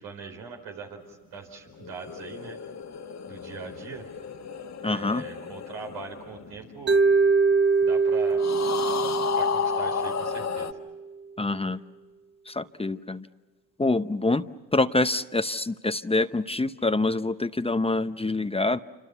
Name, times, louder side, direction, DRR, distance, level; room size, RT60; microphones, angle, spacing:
voice 1, 0.0-2.6 3.3-4.1 4.8-7.0 7.8-8.4 9.3-10.7, right 5 dB, 90° right, 1 dB, 4.8 m, -41 dB
sound 1, 1.7-7.3 8.4-10.7, left 7 dB, 45° left, 1.6 m, -32 dB
voice 2, 4.8-5.3 11.4-11.8 12.5-13.3 13.8-14.5 14.7-18.8, left 2 dB, 15° left, 11 dB, 0.8 m, -26 dB
Mallet percussion, 6.9-11.0, right 4 dB, 30° right, 0.7 m, -23 dB
27.5 x 26.0 x 7.0 m, 1.3 s
supercardioid pair, 60°, 38 cm